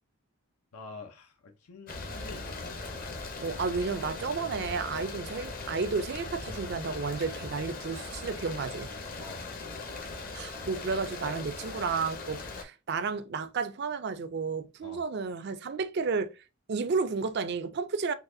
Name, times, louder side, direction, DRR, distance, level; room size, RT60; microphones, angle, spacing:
voice 1, 0.7-2.6 9.2-9.5 14.8-15.0, left 3 dB, 80° left, 0.7 m, -46 dB
sound 1, 1.9-12.6, left 3 dB, 40° left, 0.7 m, -39 dB
voice 2, 3.4-8.9 10.3-16.3 16.7-18.1, right 4 dB, 45° right, 0.4 m, -32 dB
4.0 x 2.9 x 2.6 m
head